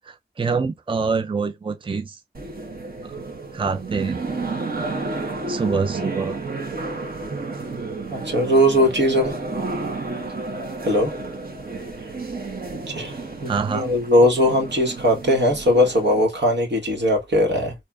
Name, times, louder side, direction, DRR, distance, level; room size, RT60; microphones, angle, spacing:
voice 1, 0.0-2.2 3.0-3.1 3.5-4.2 5.5-6.4 7.3-7.4 13.5-13.9, right 5 dB, 30° right, 0.4 m, -25 dB
sound 1, 2.3-16.2, right 3 dB, 55° right, 1.2 m, -31 dB
voice 2, 8.1-9.3 10.8-11.1 12.7-17.7, equal, 75° right, 1.6 m, -19 dB
4.3 x 2.6 x 2.5 m
wide cardioid pair, 50°, 18 cm